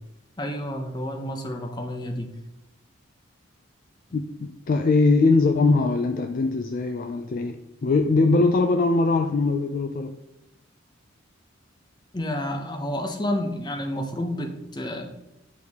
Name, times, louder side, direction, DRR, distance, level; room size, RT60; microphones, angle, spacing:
voice 1, 0.4-2.3 12.1-15.1, left 1 dB, 20° left, 5 dB, 0.7 m, -30 dB
voice 2, 4.1-10.2, left 3 dB, 40° left, 7 dB, 0.3 m, -21 dB
8.1 x 4.6 x 3.5 m, 0.90 s
head